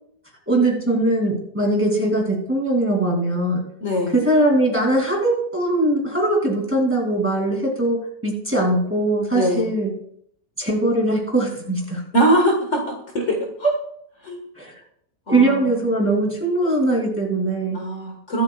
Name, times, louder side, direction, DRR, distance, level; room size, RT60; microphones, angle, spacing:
voice 1, 0.5-3.6 4.1-8.0 8.2-9.9 10.6-12.0 13.6-13.7 14.6-14.7 15.3-17.8, right 1 dB, 10° right, -2 dB, 2.8 m, -21 dB
voice 2, 3.8-4.1 9.3-9.7 12.1-12.8 13.1-13.5 14.2-14.4 15.3-15.7 17.7-18.4, right 1 dB, 50° left, 1 dB, 1.9 m, -21 dB
22.5 x 8.2 x 2.4 m, 0.70 s
omnidirectional pair, 1.6 m